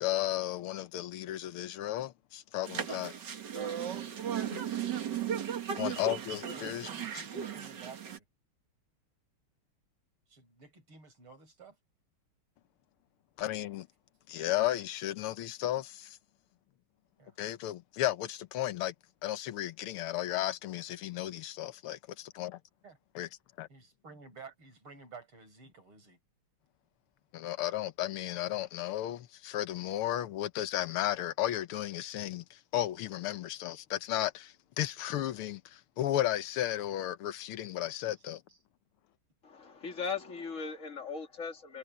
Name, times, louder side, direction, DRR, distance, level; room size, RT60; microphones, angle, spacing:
voice 1, 0.0-3.1 4.5-4.6 5.8-6.9 13.4-13.9 14.3-16.2 17.4-18.9 19.2-22.6 23.2-23.3 23.6-23.7 27.3-38.4, left 13 dB, 85° left, 1.8 m, -34 dB
sound 1, 2.6-8.2, right 8 dB, 55° right, 2.1 m, -36 dB
voice 2, 3.9-5.0 5.8-6.2 6.5-8.2 10.3-11.8 17.2-17.4 22.8-23.0 23.7-26.2 38.5-38.6, right 4 dB, 80° right, 6.4 m, -53 dB
voice 3, 39.4-41.8, left 5 dB, 35° left, 2.8 m, -38 dB
omnidirectional pair, 2.3 m